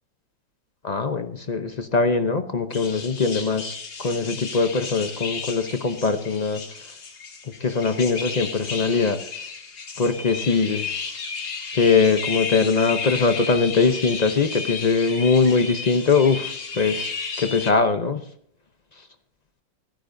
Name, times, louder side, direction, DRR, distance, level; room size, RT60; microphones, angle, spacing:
voice 1, 0.8-6.6 7.6-9.2 10.0-11.2 11.7-17.1 17.4-18.2, left 4 dB, 80° left, 8 dB, 0.3 m, -21 dB
sound 1, 2.7-17.7, left 5 dB, 55° left, 2.5 m, -33 dB
29.5 x 10.0 x 2.6 m, 0.64 s
omnidirectional pair, 2.0 m